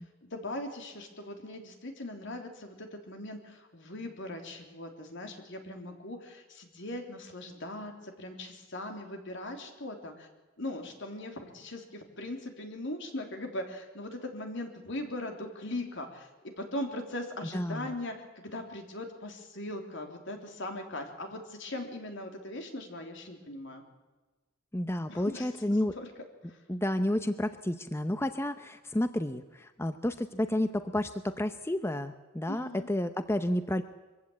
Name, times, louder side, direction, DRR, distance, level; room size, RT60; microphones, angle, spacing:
voice 1, 0.2-10.3 10.6-16.3 16.6-23.8 25.1-25.5 25.9-26.1 26.5-26.6 32.5-32.9, left 1 dB, 65° left, 4 dB, 3.4 m, -40 dB
voice 2, 17.5-17.9 24.7-25.9 26.7-33.8, left 1 dB, 15° left, 10 dB, 0.7 m, -31 dB
23.5 x 15.5 x 8.6 m, 1.2 s
head